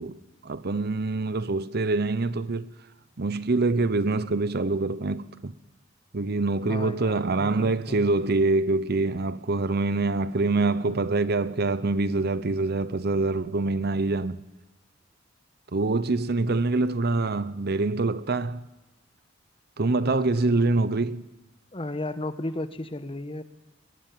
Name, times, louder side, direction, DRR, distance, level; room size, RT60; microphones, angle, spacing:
voice 1, 0.0-2.7 3.2-5.5 6.1-14.4 15.7-18.7 19.8-21.3, right 3 dB, 55° right, 0.8 m, -25 dB
voice 2, 6.7-8.2 20.1-20.6 21.7-23.4, left 2 dB, 30° left, 1.3 m, -35 dB
21.5 x 21.0 x 9.5 m
head